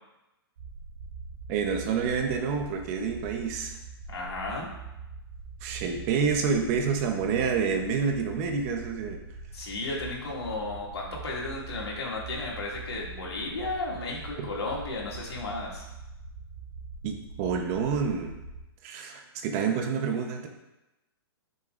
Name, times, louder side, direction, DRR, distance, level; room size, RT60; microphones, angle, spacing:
sound 1, 0.6-18.6, right 4 dB, 70° right, 2.3 m, -43 dB
voice 1, 1.5-3.8 5.6-9.2 14.4-14.5 17.0-18.3 18.8-20.5, right 6 dB, 35° right, 4 dB, 1.0 m, -28 dB
voice 2, 4.1-4.7 9.5-15.8, left 2 dB, 90° left, -3 dB, 2.5 m, -34 dB
8.7 x 6.6 x 2.6 m, 0.97 s
hypercardioid pair, 140°, 13 cm